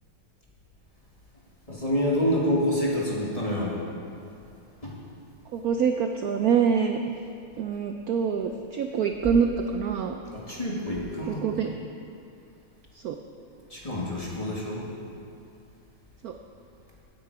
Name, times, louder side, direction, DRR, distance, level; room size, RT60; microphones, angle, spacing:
voice 1, 1.7-3.8 4.8-5.0 10.3-11.7 13.7-14.9, left 1 dB, 15° left, -5 dB, 2.1 m, -27 dB
voice 2, 5.5-7.0 7.6-10.2 11.3-11.7 12.9-13.2 16.2-16.3, right 6 dB, 75° right, 5 dB, 0.8 m, -25 dB
16.5 x 9.2 x 4.8 m, 2.6 s
omnidirectional pair, 2.2 m